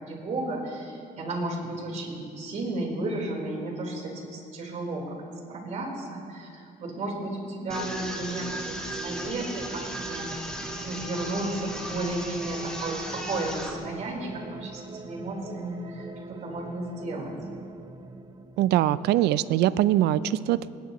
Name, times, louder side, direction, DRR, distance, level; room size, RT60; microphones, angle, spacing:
voice 1, 0.0-5.2 5.5-17.3, right 2 dB, 45° right, -3 dB, 4.1 m, -33 dB
sound 1, 7.7-13.7, equal, 5° left, 2.0 m, -37 dB
sound 2, 7.7-18.9, right 4 dB, 25° right, 0.6 m, -42 dB
voice 2, 18.6-20.7, right 13 dB, 80° right, 16 dB, 0.4 m, -22 dB
29.0 x 10.5 x 3.1 m, 2.5 s
cardioid pair, 110°, 17 cm